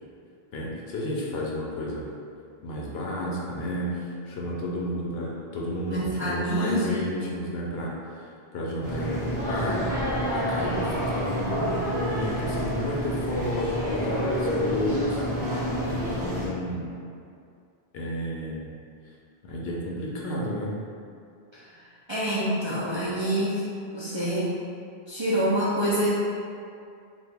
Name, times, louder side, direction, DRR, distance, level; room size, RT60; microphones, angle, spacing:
voice 1, 0.5-2.0 2.6-9.9 10.3-15.2 15.9-16.9 17.9-18.7 19.4-20.7, left 1 dB, 70° left, -3 dB, 0.8 m, -31 dB
voice 2, 5.8-7.0 22.1-23.6 23.9-24.5 25.1-26.1, right 1 dB, 45° right, -11 dB, 0.4 m, -26 dB
sound 1, 8.8-16.5, equal, 30° right, 1.4 m, -28 dB
2.9 x 2.4 x 3.4 m, 2.4 s
omnidirectional pair, 1.1 m